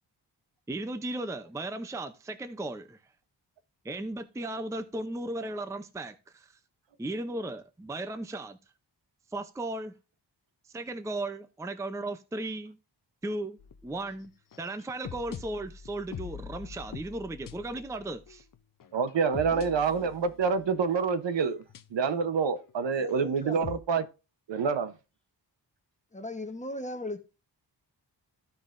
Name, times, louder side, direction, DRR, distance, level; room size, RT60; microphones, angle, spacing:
voice 1, 0.7-3.0 3.8-6.6 7.0-8.6 9.3-9.9 10.7-12.8 13.2-14.3 14.6-18.4, right 2 dB, 5° right, 0.5 m, -36 dB
sound 1, 13.6-21.0 21.7-22.3 22.5-23.8, left 7 dB, 50° left, 0.6 m, -44 dB
voice 2, 18.9-21.6 21.9-24.1 24.5-24.9, right 5 dB, 80° right, 0.9 m, -27 dB
voice 3, 23.0-23.6 26.1-27.2, left 1 dB, 15° left, 1.0 m, -37 dB
14.5 x 5.4 x 2.5 m
wide cardioid pair, 175°, 43 cm